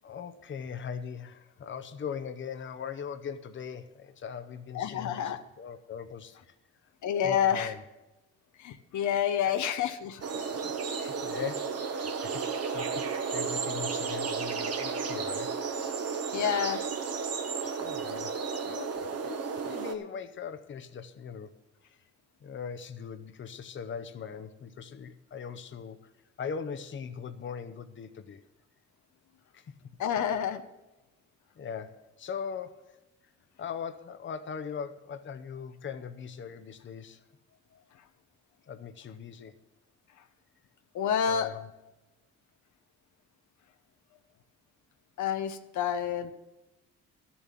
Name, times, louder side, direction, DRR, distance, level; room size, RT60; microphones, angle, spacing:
voice 1, 0.0-6.5 7.2-7.8 9.4-9.7 10.9-15.6 17.6-18.3 18.6-21.5 21.8-22.0 22.4-26.1 26.4-28.4 29.5-29.7 31.6-33.0 33.6-37.2 38.7-39.5 41.2-41.7, left 7 dB, 40° left, 9 dB, 0.8 m, -40 dB
voice 2, 4.7-5.4 7.0-7.7 8.6-10.4 16.3-16.8 30.0-30.6 40.9-41.5 45.2-46.3, left 8 dB, 75° left, 8 dB, 0.9 m, -28 dB
sound 1, 10.2-19.9, right 5 dB, 55° right, 1.4 m, -33 dB
12.0 x 7.1 x 7.5 m, 1.0 s
cardioid pair, 90°, 30 cm